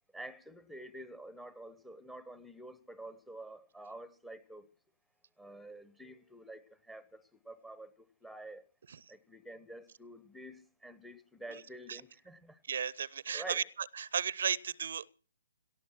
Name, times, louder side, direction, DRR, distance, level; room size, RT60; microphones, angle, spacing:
voice 1, 0.1-4.7 5.4-8.7 9.1-12.6 13.3-13.7, right 1 dB, ahead, 0.9 m, -49 dB
voice 2, 12.7-13.6 14.0-15.1, right 7 dB, 55° right, 0.7 m, -34 dB
18.0 x 13.0 x 6.1 m
figure-of-eight pair, 130°, 0 cm